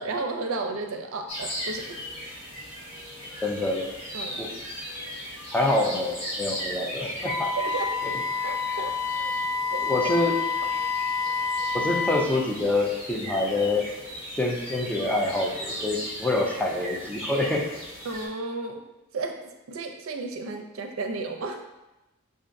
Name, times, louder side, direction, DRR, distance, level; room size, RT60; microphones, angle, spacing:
voice 1, 0.0-2.0 4.1-4.4 7.6-7.9 8.4-9.4 9.7-9.9 10.6-10.7 18.0-18.8 19.1-19.4 19.7-21.6, right 3 dB, 85° right, 4 dB, 0.5 m, -33 dB
sound 1, 1.3-18.3, equal, 30° left, 1.3 m, -38 dB
voice 2, 3.4-3.9 4.4-4.5 5.5-7.5 8.0-8.1 9.8-10.4 11.7-13.9 14.4-17.7, left 2 dB, 5° left, -1 dB, 0.5 m, -26 dB
Wind instrument woodwind instrument, 7.2-12.3, left 4 dB, 75° left, 0.3 m, -28 dB
5.0 x 2.5 x 2.5 m, 0.99 s
head